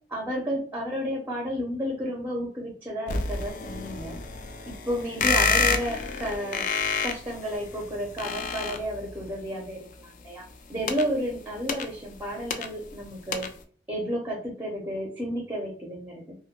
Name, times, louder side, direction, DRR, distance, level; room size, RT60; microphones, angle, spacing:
voice 1, 0.1-4.2 4.7-6.6 7.0-10.4 10.7-13.5 13.9-16.4, equal, 10° right, -1 dB, 0.5 m, -32 dB
sound 1, 3.1-9.3 10.5-13.0 13.3-13.6, left 5 dB, 45° left, 0.3 m, -29 dB
2.5 x 2.1 x 2.8 m, 0.43 s
head